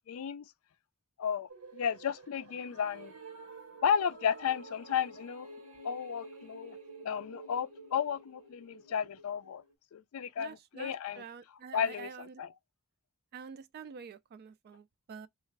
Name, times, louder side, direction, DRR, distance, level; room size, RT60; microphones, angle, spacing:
voice 1, 0.1-0.5 1.2-3.1 3.8-5.5 5.8-6.8 7.0-9.6 9.9-11.2 11.7-12.1 12.4-12.5, left 7 dB, 75° left, 0.4 m, -33 dB
sound 1, 1.5-9.7, right 3 dB, 90° right, 1.2 m, -51 dB
voice 2, 10.4-12.4 13.3-15.3, right 6 dB, 45° right, 0.3 m, -47 dB
3.1 x 2.4 x 3.1 m
head